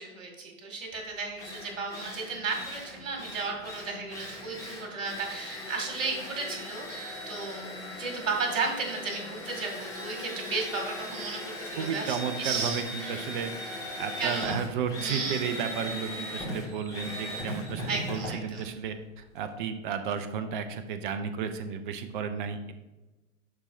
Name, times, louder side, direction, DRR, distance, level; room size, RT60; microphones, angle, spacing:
voice 1, 0.0-13.2 14.2-14.6 15.0-15.4 17.9-18.6, right 4 dB, 65° right, 1 dB, 2.3 m, -34 dB
Drill, 0.9-1.0 1.4-19.5, left 1 dB, 10° left, 2.0 m, -39 dB
voice 2, 11.8-22.7, right 7 dB, 40° right, 9 dB, 0.7 m, -33 dB
11.5 x 4.4 x 2.7 m, 1.1 s
figure-of-eight pair, 105°, 41 cm